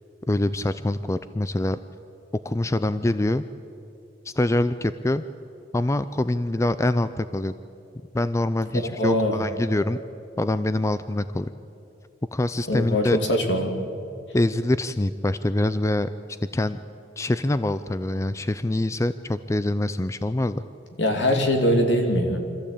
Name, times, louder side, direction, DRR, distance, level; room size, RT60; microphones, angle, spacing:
voice 1, 0.3-1.8 2.4-3.4 4.3-5.2 5.7-7.5 8.1-10.0 10.4-11.5 12.3-13.2 14.3-16.1 16.5-16.8 17.2-20.6, left 1 dB, 15° left, 13 dB, 0.4 m, -24 dB
voice 2, 8.7-9.4 12.7-13.8 21.0-22.4, equal, 75° left, 3 dB, 2.7 m, -22 dB
26.0 x 14.5 x 8.5 m, 2.7 s
head